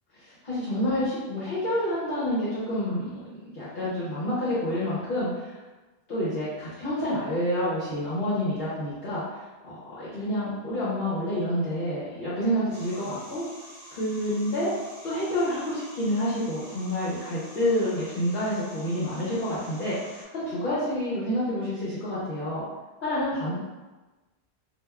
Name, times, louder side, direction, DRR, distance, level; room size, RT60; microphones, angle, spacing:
voice 1, 0.1-3.2 3.5-5.6 6.1-13.4 13.9-14.7 15.0-22.6 23.0-23.6, left 1 dB, 60° left, -10 dB, 0.9 m, -28 dB
sound 1, 12.7-20.2, equal, 45° right, 0.8 m, -48 dB
3.2 x 2.3 x 2.3 m, 1.2 s
omnidirectional pair, 1.1 m